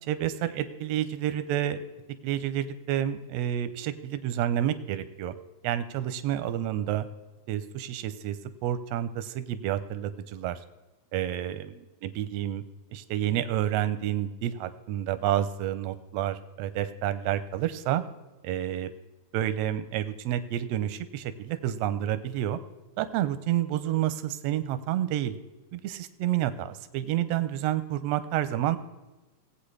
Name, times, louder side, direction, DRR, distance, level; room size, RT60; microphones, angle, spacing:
voice 1, 0.0-1.8 2.2-5.3 5.6-7.1 7.5-8.4 8.6-10.6 11.1-11.7 12.0-12.6 12.9-18.0 18.4-18.9 19.3-22.6 23.0-25.4 25.7-28.8, right 11 dB, 75° right, 11 dB, 1.5 m, -29 dB
17.5 x 8.3 x 3.3 m, 1.1 s
omnidirectional pair, 3.5 m